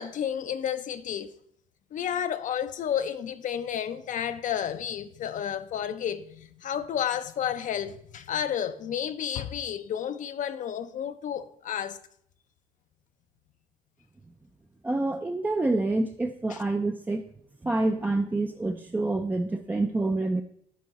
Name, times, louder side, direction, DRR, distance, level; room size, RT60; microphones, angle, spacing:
voice 1, 0.0-1.3 1.9-12.0 16.5-16.6, left 9 dB, 50° left, 0.5 m, -31 dB
voice 2, 14.8-17.2 17.6-20.4, right 2 dB, 10° right, 0.4 m, -27 dB
11.5 x 3.8 x 4.1 m
cardioid pair, 110°, 17 cm